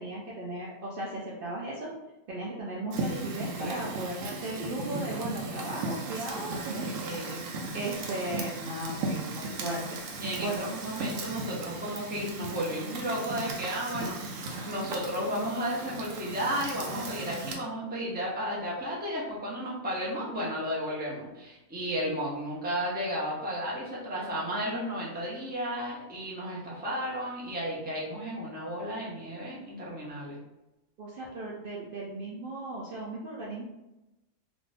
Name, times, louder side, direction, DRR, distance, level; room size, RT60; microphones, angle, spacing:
voice 1, 0.0-1.9 2.3-9.8 10.4-10.7 31.0-33.6, right 1 dB, 90° right, -5 dB, 0.4 m, -36 dB
Fire, 2.9-17.6, right 2 dB, 70° right, 0.9 m, -37 dB
voice 2, 3.6-4.1 6.7-7.5 9.4-9.5 10.2-30.4, equal, 10° right, -6 dB, 0.4 m, -33 dB
2.6 x 2.5 x 3.2 m, 0.97 s
omnidirectional pair, 1.6 m